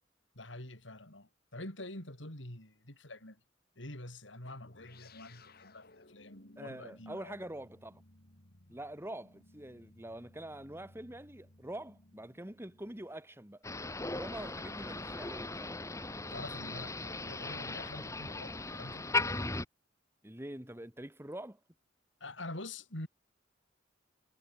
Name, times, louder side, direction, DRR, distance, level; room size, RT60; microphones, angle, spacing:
voice 1, 0.3-3.4 3.8-7.4 14.4-14.5 16.2-19.0 22.2-23.1, left 1 dB, 75° left, 6.4 m, -46 dB
sound 1, 4.6-13.4, left 2 dB, 55° left, 4.1 m, -60 dB
voice 2, 6.6-8.0 8.7-13.6 14.0-15.8 20.2-21.6, right 1 dB, 15° right, 2.0 m, -45 dB
Motor vehicle (road), 13.6-19.6, left 3 dB, 15° left, 1.6 m, -37 dB
head